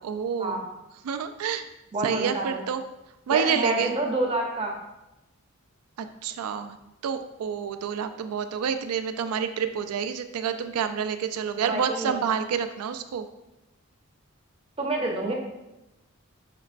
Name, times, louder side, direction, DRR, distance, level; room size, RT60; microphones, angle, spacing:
voice 1, 0.0-0.6 1.0-1.7 2.0-2.8 3.3-4.0 6.0-6.8 7.0-13.3, right 7 dB, 85° right, 9 dB, 0.3 m, -28 dB
voice 2, 1.9-2.6 3.3-4.7 11.7-12.2 14.8-15.3, right 2 dB, 25° right, 0 dB, 0.5 m, -28 dB
5.2 x 3.0 x 2.5 m, 0.96 s
head